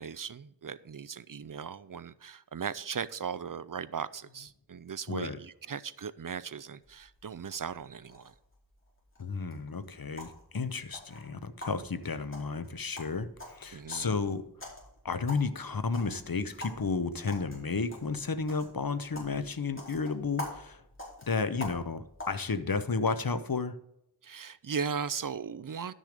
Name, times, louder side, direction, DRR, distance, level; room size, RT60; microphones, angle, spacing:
voice 1, 0.0-8.3 13.7-14.1 24.2-25.9, right 6 dB, 60° right, 17 dB, 0.5 m, -38 dB
voice 2, 5.1-5.4 9.2-14.7 15.0-20.8 21.3-23.7, left 4 dB, 65° left, 11 dB, 0.8 m, -32 dB
sound 1, 6.8-22.3, left 1 dB, 30° left, 4.4 m, -47 dB
11.5 x 6.4 x 5.1 m, 0.78 s
wide cardioid pair, 45°, 38 cm